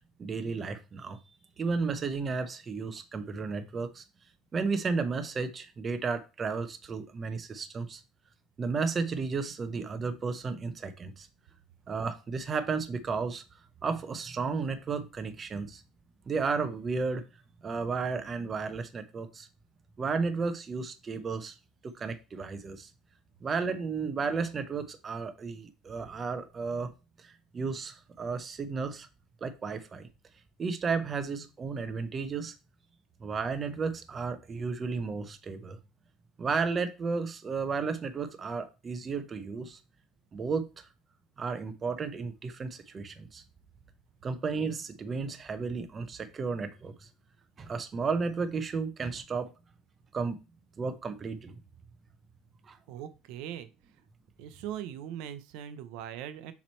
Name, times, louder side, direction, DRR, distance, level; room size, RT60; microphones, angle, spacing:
voice 1, 0.2-1.2 1.6-4.0 4.5-8.0 8.6-11.3 11.9-13.4 13.8-15.8 16.3-17.2 17.6-19.5 20.0-21.5 22.0-22.9 23.4-26.9 27.2-29.1 29.4-30.1 30.6-32.5 33.2-35.8 36.4-39.8 40.3-40.9 41.4-43.4 44.2-47.1 47.6-49.5 50.1-50.4 50.8-51.6 52.7-52.8, right 4 dB, 20° right, 0.5 m, -33 dB
voice 2, 52.9-53.7 54.4-56.5, right 10 dB, 65° right, 0.5 m, -40 dB
7.2 x 3.0 x 4.3 m
cardioid pair, 170°, 0 cm